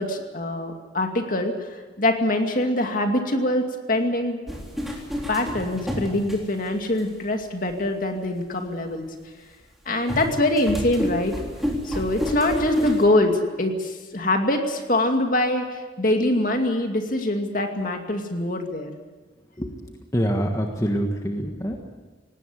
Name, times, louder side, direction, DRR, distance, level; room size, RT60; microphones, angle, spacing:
voice 1, 0.0-4.4 5.3-9.1 9.9-11.4 11.8-18.9, left 1 dB, 45° left, 4 dB, 2.4 m, -24 dB
sound 1, 4.5-7.0 7.7-7.8 10.1-13.0, equal, ahead, 3.5 m, -29 dB
voice 2, 19.6-21.8, equal, 15° left, 2 dB, 1.5 m, -26 dB
19.0 x 17.5 x 9.7 m, 1.3 s
head